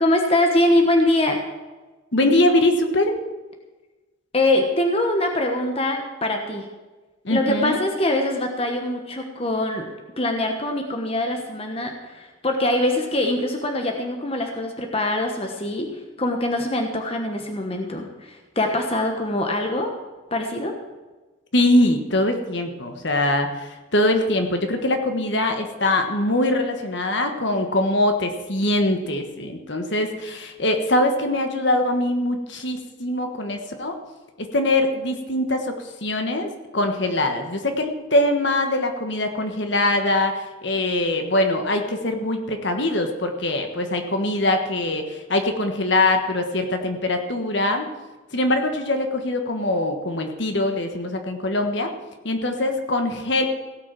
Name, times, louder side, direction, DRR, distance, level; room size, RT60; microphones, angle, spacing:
voice 1, 0.0-1.4 4.3-6.7 7.3-19.9 20.3-20.7, left 1 dB, 30° left, 3 dB, 1.2 m, -23 dB
voice 2, 2.1-3.1 7.2-7.8 21.5-34.0 34.5-47.9 48.3-51.9 52.2-53.5, left 1 dB, 55° left, 5 dB, 1.4 m, -22 dB
17.0 x 6.1 x 7.5 m, 1.2 s
head